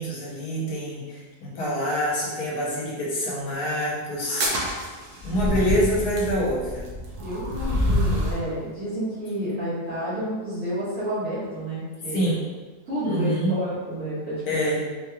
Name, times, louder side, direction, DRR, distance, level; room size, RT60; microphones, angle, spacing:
voice 1, 0.0-4.7 5.2-6.8 12.1-12.4 13.0-13.5 14.4-14.8, equal, 85° left, -5 dB, 1.5 m, -26 dB
sound 1, 4.2-8.4, equal, 90° right, 1.3 m, -27 dB
voice 2, 7.2-12.3 12.9-14.7, equal, 60° right, -15 dB, 1.9 m, -30 dB
4.4 x 3.1 x 2.3 m, 1.3 s
omnidirectional pair, 1.6 m